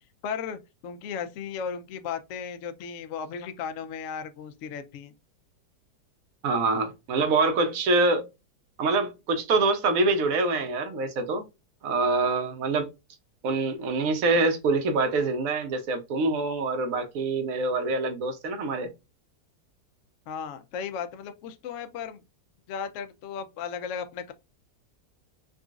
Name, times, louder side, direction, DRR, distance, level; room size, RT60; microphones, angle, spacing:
voice 1, 0.2-5.1 20.3-22.2 22.7-24.3, left 7 dB, 75° left, 0.6 m, -35 dB
voice 2, 6.4-8.3 8.8-11.5 11.8-12.9 13.4-18.9, right 3 dB, 65° right, 1.0 m, -25 dB
3.7 x 2.3 x 2.4 m
omnidirectional pair, 1.8 m